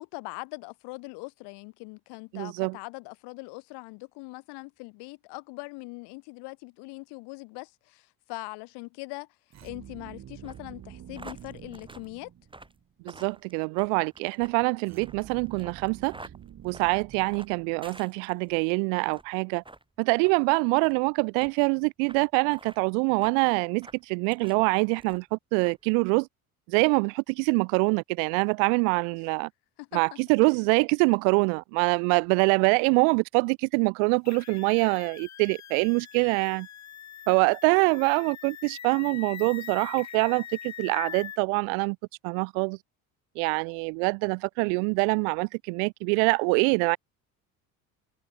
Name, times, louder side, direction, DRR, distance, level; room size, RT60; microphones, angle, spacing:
voice 1, 0.0-9.3 9.6-12.3 29.8-30.2, left 28 dB, 65° left, 0.9 m, -41 dB
voice 2, 2.3-2.8 13.0-16.2 16.6-19.6 20.0-26.3 26.7-29.5 29.9-36.7 37.3-42.0 42.2-42.8 43.4-47.0, right 40 dB or more, 70° right, 0.6 m, -25 dB
sound 1, 9.5-12.8 14.8-18.1, right 10 dB, 40° right, 1.2 m, -47 dB
sound 2, 10.4-18.6 19.0-19.3 19.6-19.8 20.2-20.4 20.8-21.0 21.4-21.5 22.1-22.2 22.5-22.8 23.2-23.4 23.8-24.6 25.0-25.3 25.6-25.8, right 2 dB, 10° right, 3.8 m, -49 dB
sound 3, 34.2-41.4, left 9 dB, 40° left, 1.7 m, -42 dB
hypercardioid pair, 70°, 43 cm